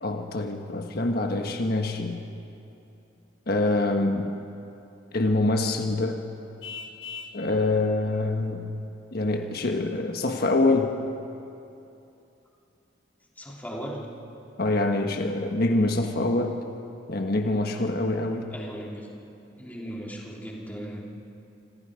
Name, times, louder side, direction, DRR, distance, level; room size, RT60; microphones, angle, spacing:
voice 1, 0.0-2.2 3.5-4.3 5.1-6.2 7.3-8.7 9.1-11.0 14.6-16.6 17.1-18.5, left 2 dB, 55° left, 4 dB, 1.4 m, -25 dB
Vehicle horn car horn honking, 6.6-7.4, left 6 dB, 80° left, 1.3 m, -39 dB
voice 2, 13.4-14.1 18.5-19.1 19.6-21.0, equal, 10° left, -3 dB, 3.3 m, -37 dB
26.5 x 26.5 x 5.1 m, 2.8 s
head